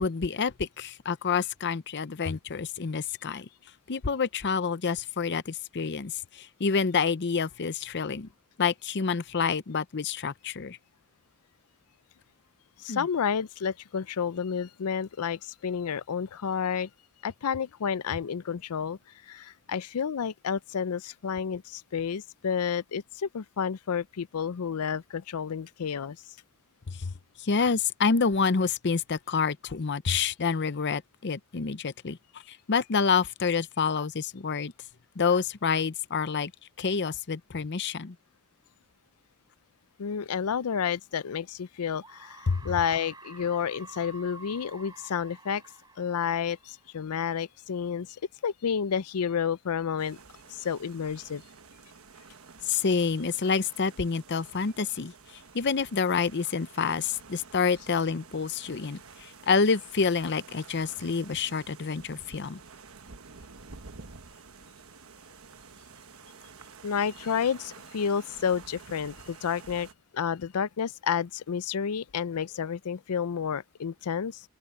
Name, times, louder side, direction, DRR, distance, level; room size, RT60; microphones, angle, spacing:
voice 1, 0.0-3.5 3.9-8.3 8.6-10.8 12.9-13.1 26.9-27.1 27.4-32.2 32.5-34.7 35.2-36.5 36.8-38.1 42.5-42.7 52.7-55.1 55.5-62.6, left 5 dB, 50° left, 0.7 m, -28 dB
voice 2, 12.8-16.9 17.2-19.0 19.3-26.2 40.0-45.6 46.0-48.1 48.4-50.2 50.5-51.4 66.8-69.9 70.1-74.4, left 7 dB, 90° left, 0.5 m, -30 dB
sound 1, 41.2-41.3 42.0-47.2, right 3 dB, 20° right, 6.2 m, -50 dB
sound 2, 50.0-69.9, right 5 dB, 70° right, 1.2 m, -50 dB
open air
head